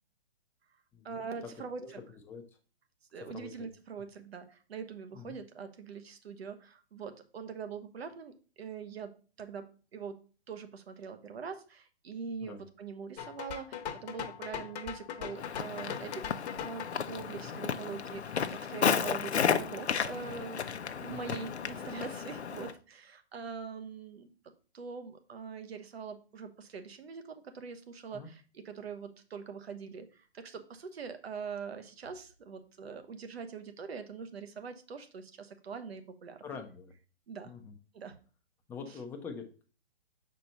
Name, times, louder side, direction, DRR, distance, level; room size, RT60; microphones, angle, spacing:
voice 1, 1.0-2.0 3.1-9.1 9.4-9.7 9.9-10.2 10.5-20.7 21.0-24.3 24.7-36.4 37.3-37.5 37.9-38.2, right 6 dB, 70° right, 8 dB, 1.2 m, -43 dB
sound 1, 13.2-16.9, left 9 dB, 40° left, 1.0 m, -41 dB
Walk footsteps, 15.4-22.7, left 7 dB, 85° left, 0.7 m, -33 dB
voice 2, 36.4-36.9 37.4-37.7 38.7-39.6, left 5 dB, 5° left, 3 dB, 0.5 m, -44 dB
6.7 x 4.5 x 4.0 m, 0.37 s
hypercardioid pair, 135°, 33 cm